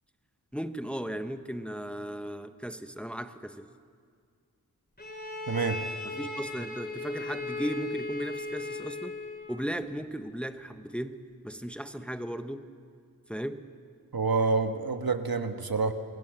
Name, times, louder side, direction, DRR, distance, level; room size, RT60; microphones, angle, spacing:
voice 1, 0.5-3.7 6.0-9.1 9.5-12.7 13.3-13.7, equal, 5° left, 8 dB, 1.0 m, -36 dB
Bowed string instrument, 5.0-9.6, left 3 dB, 25° left, 3.4 m, -37 dB
voice 2, 5.5-5.8 14.1-15.9, right 4 dB, 70° right, 7 dB, 1.5 m, -27 dB
27.5 x 21.0 x 7.6 m, 2.1 s
wide cardioid pair, 55°, 37 cm